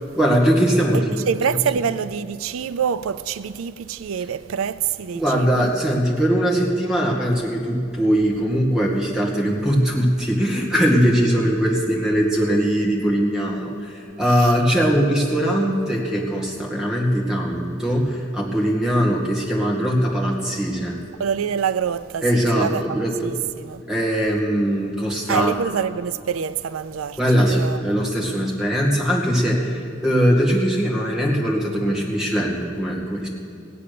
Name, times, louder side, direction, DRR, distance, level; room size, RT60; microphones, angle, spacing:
voice 1, 0.2-1.2 5.1-21.0 22.2-23.1 23.9-25.5 27.2-33.3, equal, 5° right, 2.0 m, -21 dB
voice 2, 0.9-5.7 14.3-14.6 21.2-23.8 25.3-27.8, right 7 dB, 90° right, 0.4 m, -26 dB
17.0 x 8.6 x 6.8 m
head